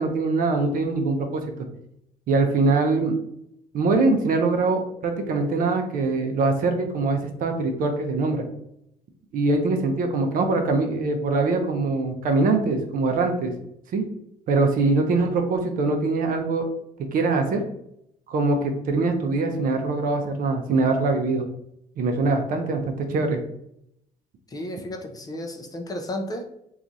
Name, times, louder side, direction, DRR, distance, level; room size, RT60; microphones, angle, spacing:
voice 1, 0.0-1.4 2.3-3.2 3.7-8.4 9.3-13.6 13.9-14.0 14.5-16.7 17.1-17.6 18.3-21.5 22.0-23.4, right 3 dB, 55° right, 5 dB, 0.5 m, -23 dB
voice 2, 24.5-26.6, left 1 dB, 20° left, 4 dB, 0.4 m, -33 dB
2.9 x 2.4 x 2.5 m, 0.76 s
cardioid pair, 110°, 17 cm